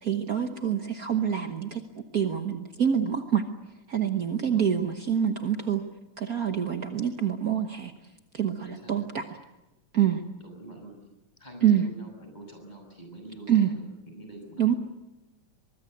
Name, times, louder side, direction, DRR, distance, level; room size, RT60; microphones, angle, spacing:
voice 1, 0.0-1.8 2.1-3.4 3.9-5.8 6.2-7.9 8.3-9.3 9.9-10.2 11.6-11.8 13.5-13.7 14.6-14.7, right 9 dB, 65° right, 6 dB, 0.9 m, -26 dB
voice 2, 4.3-4.6 6.7-6.9 8.6-8.9 10.4-10.9 11.4-13.8 14.1-14.8, right 2 dB, 15° left, 3 dB, 6.7 m, -45 dB
24.0 x 22.0 x 7.9 m, 0.99 s
omnidirectional pair, 3.4 m